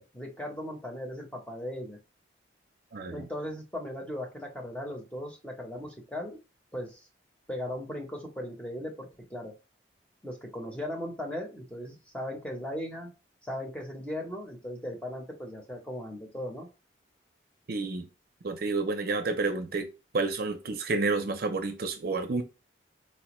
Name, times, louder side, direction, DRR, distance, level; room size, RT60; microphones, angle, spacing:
voice 1, 0.0-2.0 3.1-6.4 6.7-7.1 7.5-9.5 10.2-13.1 13.4-16.7, left 1 dB, 5° left, 0.7 m, -38 dB
voice 2, 2.9-3.3 17.7-18.1 18.4-19.9 20.1-22.4, right 3 dB, 55° right, 0.5 m, -30 dB
4.3 x 2.2 x 3.0 m
head